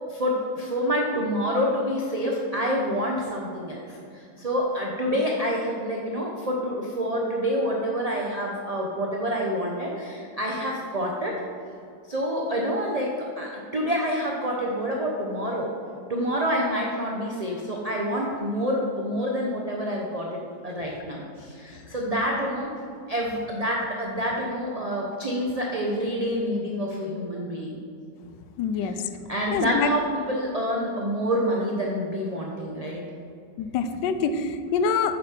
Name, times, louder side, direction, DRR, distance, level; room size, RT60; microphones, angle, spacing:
voice 1, 0.1-11.4 12.1-15.7 16.1-22.7 23.1-27.8 28.8-29.0 29.3-33.0, equal, 35° right, -2 dB, 0.6 m, -27 dB
voice 2, 28.6-28.9 29.5-29.9 33.6-35.2, left 5 dB, 75° left, 9 dB, 1.2 m, -25 dB
9.6 x 7.3 x 4.4 m, 2.6 s
omnidirectional pair, 2.0 m